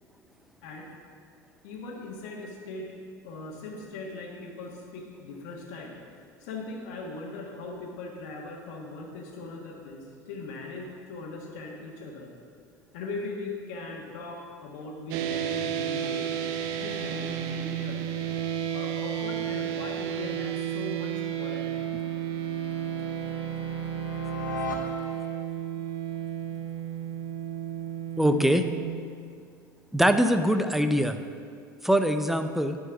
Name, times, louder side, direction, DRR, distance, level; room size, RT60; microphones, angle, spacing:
voice 1, 1.6-2.9 3.2-6.0 6.4-12.3 12.9-16.3 16.8-18.0 18.7-21.7, left 3 dB, 65° left, -1 dB, 1.4 m, -39 dB
sound 1, 15.1-28.9, right 10 dB, 60° right, 0.6 m, -32 dB
sound 2, 19.2-25.5, left 2 dB, 85° left, 0.8 m, -41 dB
voice 2, 28.2-28.7 29.9-31.2 31.8-32.8, equal, ahead, 9 dB, 0.5 m, -23 dB
9.8 x 4.7 x 5.9 m, 2.2 s
hypercardioid pair, 75°, 10 cm